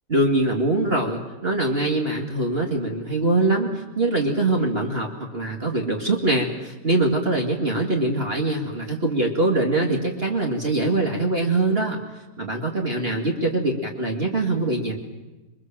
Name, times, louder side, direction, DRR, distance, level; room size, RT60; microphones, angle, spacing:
voice 1, 0.1-12.0 12.4-15.0, right 2 dB, 35° right, 0 dB, 2.6 m, -23 dB
27.5 x 23.0 x 7.5 m, 1.1 s
omnidirectional pair, 1.9 m